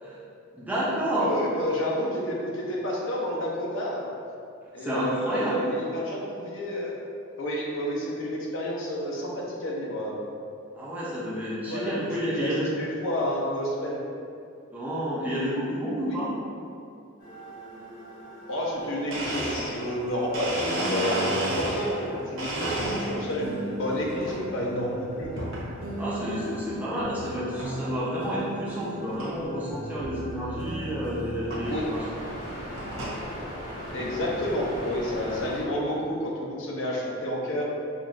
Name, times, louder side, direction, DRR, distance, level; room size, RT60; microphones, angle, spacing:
voice 1, 0.5-1.3 4.8-5.7 10.7-12.8 14.7-16.3 26.0-32.2, equal, 10° right, -8 dB, 0.6 m, -30 dB
voice 2, 1.2-4.1 4.7-7.0 7.4-10.2 11.6-14.0 16.1-16.2 18.5-25.5 31.7-31.8 33.9-37.6, left 1 dB, 65° left, -3 dB, 0.7 m, -30 dB
sound 1, 17.2-36.1, equal, 40° left, 1.0 m, -42 dB
Domestic sounds home sounds, 19.1-22.0 22.4-23.4 23.9-24.4 25.4-25.7 26.3-26.4 27.2-27.3 27.6-27.9 28.4-28.5 28.6-28.7 29.2-29.3 30.6-30.7 31.5-31.7 32.3-33.2, right 1 dB, 65° right, 0.9 m, -31 dB
sound 2, 22.8-32.2, right 1 dB, 85° right, 0.5 m, -37 dB
5.8 x 2.5 x 2.4 m, 2.5 s
head